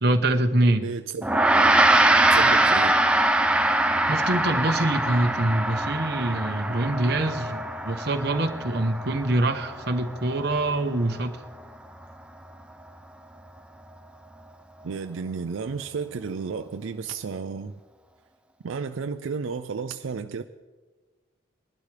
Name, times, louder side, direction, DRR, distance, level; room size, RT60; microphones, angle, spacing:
voice 1, 0.0-0.9 4.1-11.4, right 1 dB, 55° right, 0.9 m, -24 dB
voice 2, 0.7-1.7 2.3-3.0 14.8-17.7 18.6-20.4, right 5 dB, 80° right, 0.4 m, -32 dB
Gong, 1.2-10.8, right 1 dB, 5° right, 0.5 m, -23 dB
21.0 x 12.0 x 3.3 m
head